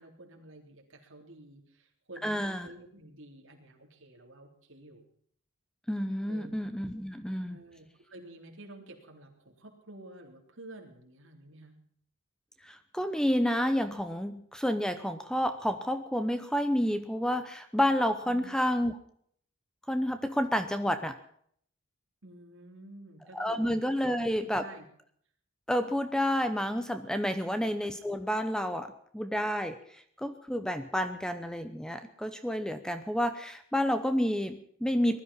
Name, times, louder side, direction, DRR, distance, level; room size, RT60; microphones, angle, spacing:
voice 1, 0.0-5.0 6.3-6.5 7.5-11.8 18.2-18.5 22.2-23.7 24.0-24.1 24.4-24.8, right 1 dB, 65° right, 1 dB, 3.7 m, -50 dB
voice 2, 2.2-2.7 5.9-7.6 12.6-19.0 19.9-21.2 23.3-24.7 25.7-35.2, equal, 5° left, 9 dB, 0.8 m, -30 dB
19.5 x 12.5 x 5.6 m, 0.63 s
head